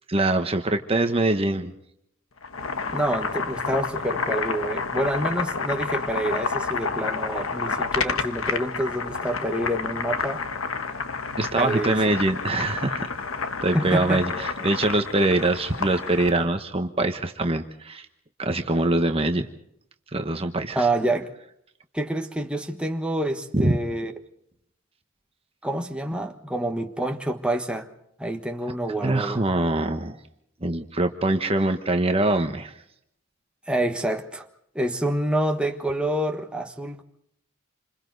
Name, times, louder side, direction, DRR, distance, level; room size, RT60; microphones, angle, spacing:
voice 1, 0.1-1.7 11.4-13.1 13.6-18.1 18.4-19.5 20.1-20.9 23.5-23.8 29.0-30.2 30.6-32.7, right 2 dB, 30° right, 1.1 m, -23 dB
Boiling, 2.4-16.4, left 4 dB, 85° left, 1.4 m, -30 dB
voice 2, 2.9-10.4 11.6-12.2 13.7-14.7 20.7-21.3 21.9-24.1 25.6-27.9 28.2-29.5 33.7-34.4 34.7-37.0, right 1 dB, 5° right, 1.4 m, -27 dB
28.0 x 26.5 x 4.0 m
head